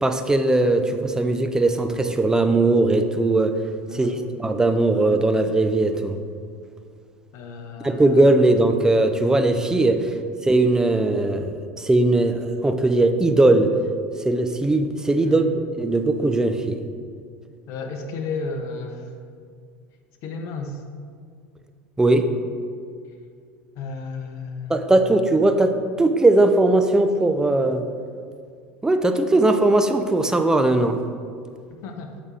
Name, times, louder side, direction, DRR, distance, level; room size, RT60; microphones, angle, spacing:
voice 1, 0.0-3.5 3.9-4.1 4.4-6.2 7.8-10.1 10.4-13.7 14.2-15.5 15.8-16.8 22.0-22.3 24.7-27.8 28.8-31.0, right 2 dB, 10° right, 8 dB, 0.5 m, -19 dB
voice 2, 3.9-4.2 7.3-8.3 10.1-10.2 15.2-15.5 17.7-19.1 20.2-20.8 23.7-25.2 31.7-32.1, left 4 dB, 45° left, 5 dB, 0.8 m, -33 dB
6.6 x 5.0 x 4.4 m, 2.2 s
figure-of-eight pair, 75°, 7 cm